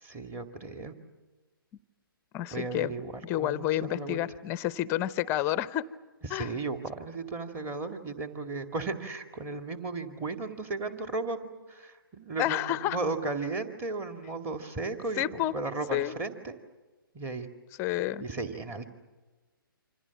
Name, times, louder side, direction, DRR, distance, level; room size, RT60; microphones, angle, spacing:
voice 1, 0.0-0.9 2.5-4.2 6.2-11.4 11.7-16.6 17.1-17.5 18.2-19.0, right 3 dB, 20° right, 7 dB, 2.2 m, -35 dB
voice 2, 2.3-2.9 3.2-5.9 6.3-6.5 12.4-13.0 15.2-15.5 15.9-16.2 17.8-18.2, left 13 dB, 20° left, 16 dB, 0.7 m, -29 dB
28.0 x 26.0 x 7.2 m, 1.2 s
figure-of-eight pair, 135°, 12 cm